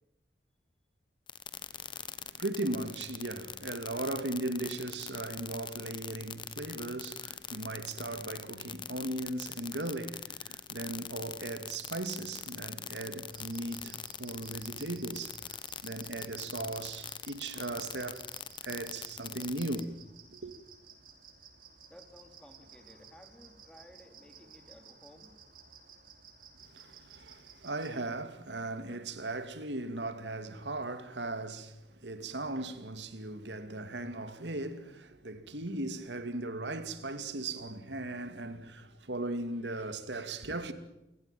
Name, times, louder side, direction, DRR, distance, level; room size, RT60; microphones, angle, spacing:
sound 1, 1.3-19.8, left 8 dB, 30° left, 1.2 m, -42 dB
voice 1, 1.7-18.3 18.6-20.5 26.6-40.7, right 2 dB, 90° right, 2.5 m, -38 dB
sound 2, 13.3-28.0, right 5 dB, 50° right, 5.7 m, -56 dB
voice 2, 21.9-25.3, equal, 5° left, 3.2 m, -56 dB
29.5 x 17.0 x 9.3 m
head